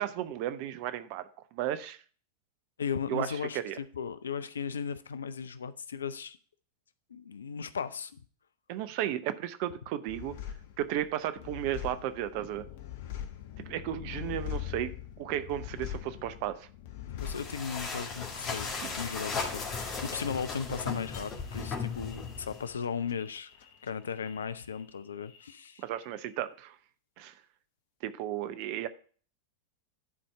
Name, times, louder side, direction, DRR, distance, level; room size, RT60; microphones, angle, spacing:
voice 1, 0.0-2.0 3.1-3.8 8.7-10.3 10.8-12.7 13.7-16.7 18.8-18.9 25.8-26.8 27.2-27.3 28.0-28.9, right 12 dB, 45° right, 0.7 m, -34 dB
voice 2, 2.8-3.6 3.9-6.4 7.1-8.2 17.1-23.5 23.8-25.8, left 6 dB, 70° left, 0.5 m, -36 dB
sound 1, 10.1-25.0 25.2-26.0, left 11 dB, 55° left, 0.9 m, -44 dB
sound 2, 17.2-22.7, left 4 dB, 30° left, 2.0 m, -36 dB
11.0 x 4.3 x 4.6 m
figure-of-eight pair, 90°, 0 cm